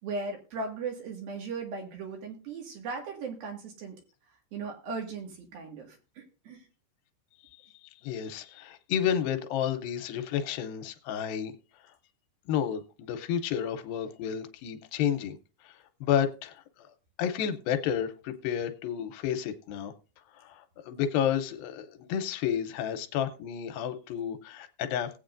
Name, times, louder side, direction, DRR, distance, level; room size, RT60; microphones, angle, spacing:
voice 1, 0.0-4.0 4.5-6.7, right 4 dB, 80° right, 3.7 m, -37 dB
voice 2, 8.0-11.5 12.5-15.4 15.6-15.7 16.0-16.9 17.2-19.9 20.3-25.1, left 9 dB, 80° left, 2.5 m, -31 dB
19.0 x 8.1 x 2.5 m
omnidirectional pair, 4.2 m